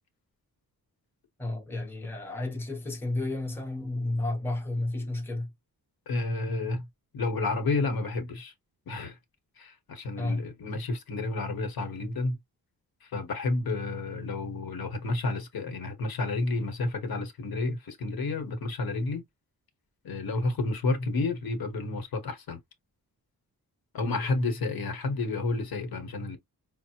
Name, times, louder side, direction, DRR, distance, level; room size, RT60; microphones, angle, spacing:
voice 1, 1.4-5.5 10.2-10.5 24.0-24.2, left 2 dB, 5° left, 0.9 m, -32 dB
voice 2, 6.1-6.9 7.1-8.5 8.9-9.2 9.6-12.4 13.0-19.2 20.0-22.6 23.9-26.4, left 3 dB, 70° left, 1.2 m, -30 dB
5.3 x 2.1 x 2.8 m
wide cardioid pair, 165°, 37 cm